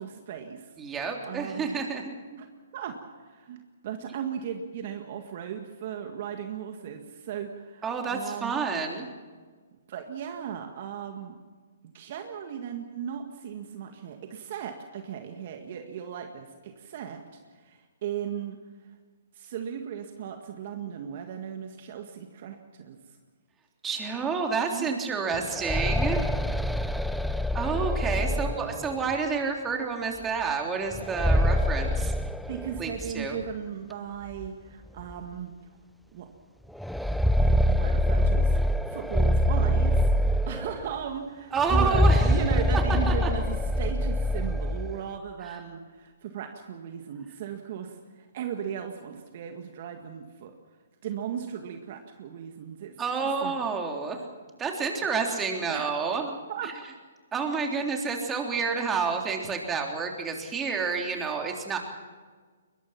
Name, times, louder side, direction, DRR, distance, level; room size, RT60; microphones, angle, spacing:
voice 1, 0.0-0.7 1.3-1.8 2.3-2.5 2.7-7.8 8.1-8.5 9.9-11.4 11.9-17.2 17.5-18.6 19.3-23.0 24.7-24.9 28.2-28.7 32.5-35.5 36.1-36.3 37.4-38.6 38.8-50.5 51.0-53.5 55.7-55.9 56.5-56.8 57.5-57.6, right 8 dB, 50° right, 5 dB, 1.9 m, -37 dB
voice 2, 0.8-2.1 7.8-9.1 23.8-26.2 27.5-32.1 32.8-33.4 41.5-42.3 43.1-43.3 45.4-45.6 53.0-54.2 54.6-56.4 56.6-56.7 57.3-61.8, right 5 dB, 15° right, 2 dB, 3.4 m, -29 dB
sound 1, 25.3-29.1 30.9-33.1 33.4-33.5 34.4-34.5 35.0-35.1 36.8-40.9 41.6-45.0, left 1 dB, ahead, 0.6 m, -25 dB
22.0 x 21.5 x 6.0 m, 1.5 s
hypercardioid pair, 135°, 0 cm